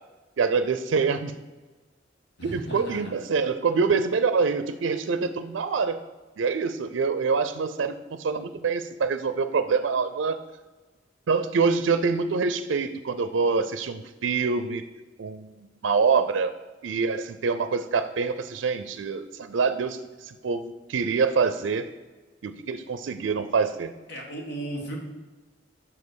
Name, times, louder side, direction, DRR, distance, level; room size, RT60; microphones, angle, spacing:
voice 1, 0.4-1.3 2.4-6.0 6.4-10.4 11.3-14.8 15.2-15.5 15.8-16.5 16.8-21.9 22.4-23.9, right 5 dB, 75° right, 11 dB, 0.4 m, -25 dB
voice 2, 2.4-3.1 24.1-25.0, right 1 dB, 65° left, 0 dB, 1.6 m, -35 dB
5.4 x 5.3 x 6.2 m, 1.3 s
head